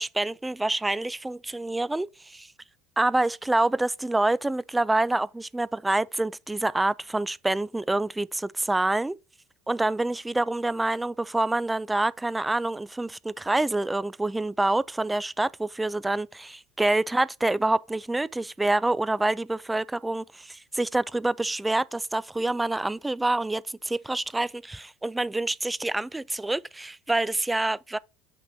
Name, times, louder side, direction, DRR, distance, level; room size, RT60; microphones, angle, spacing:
voice 1, 0.0-2.5 3.0-9.2 9.7-28.0, right 2 dB, 10° right, 0.3 m, -27 dB
5.9 x 4.0 x 5.9 m
figure-of-eight pair, 65°, 0 cm